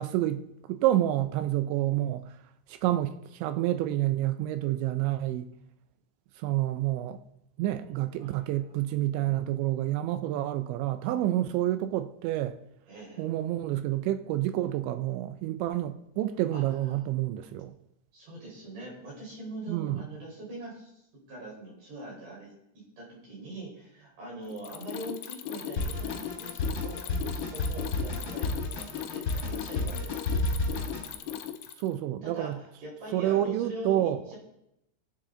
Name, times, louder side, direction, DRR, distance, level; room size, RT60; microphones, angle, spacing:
voice 1, 0.0-2.3 2.7-5.5 6.4-7.2 7.6-12.6 13.2-17.7 19.7-20.1 31.8-32.6 33.1-34.2, right 13 dB, 85° right, 10 dB, 2.6 m, -28 dB
voice 2, 8.2-9.9 12.9-13.2 16.5-17.0 18.1-22.5 23.0-30.3 32.2-34.4, right 2 dB, 40° right, -3 dB, 5.5 m, -43 dB
Mechanisms, 24.5-31.9, left 11 dB, 85° left, 2.4 m, -38 dB
Drum kit, 25.8-31.1, left 2 dB, 25° left, 4.2 m, -31 dB
19.0 x 9.0 x 3.7 m, 0.80 s
omnidirectional pair, 5.8 m